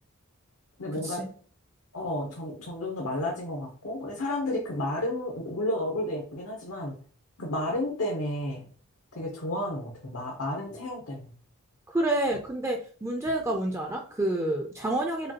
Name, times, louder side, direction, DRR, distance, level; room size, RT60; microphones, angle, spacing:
voice 1, 0.8-1.2 1.9-7.0 7.4-8.7 9.1-11.3, left 1 dB, 80° left, -1 dB, 0.8 m, -32 dB
voice 2, 11.9-15.3, right 1 dB, 10° right, 1 dB, 0.4 m, -28 dB
4.9 x 2.3 x 2.9 m, 0.43 s
head